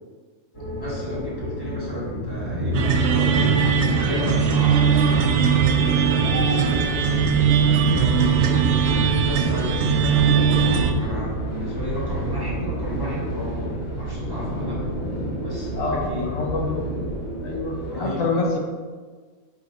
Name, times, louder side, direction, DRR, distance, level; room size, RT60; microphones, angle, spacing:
train collection - recyclart brussels, 0.5-18.0, right 1 dB, 20° left, 1.3 m, -28 dB
voice 1, 0.8-15.0 15.4-16.3 17.9-18.3, equal, 15° right, -7 dB, 1.4 m, -33 dB
sound 1, 2.7-10.9, right 7 dB, 65° right, 0.7 m, -20 dB
voice 2, 15.8-16.8 17.4-18.6, left 3 dB, 70° left, 0 dB, 1.1 m, -26 dB
5.1 x 4.9 x 3.8 m, 1.5 s
omnidirectional pair, 1.5 m